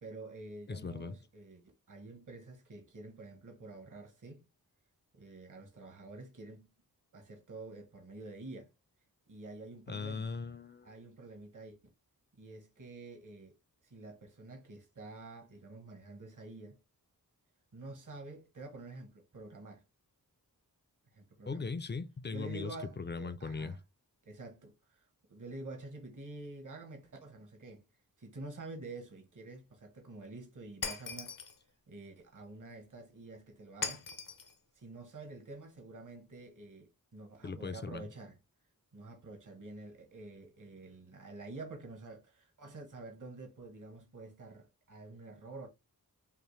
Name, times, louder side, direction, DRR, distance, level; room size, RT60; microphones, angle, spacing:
voice 1, 0.0-4.5 5.1-6.7 7.1-8.7 9.3-10.3 10.8-11.8 12.3-13.6 13.8-16.8 17.7-19.8 21.1-21.7 22.3-23.8 24.2-25.0 25.3-27.9 28.2-31.4 31.9-34.1 34.7-38.4 38.9-45.7, right 2 dB, 55° right, 1.1 m, -48 dB
voice 2, 0.7-1.2 9.9-10.9 21.5-23.8 37.4-38.0, left 4 dB, 30° left, 0.4 m, -39 dB
Shatter, 30.8-31.6 33.8-34.5, left 6 dB, 60° left, 0.7 m, -39 dB
5.7 x 2.1 x 3.1 m
wide cardioid pair, 65°, 37 cm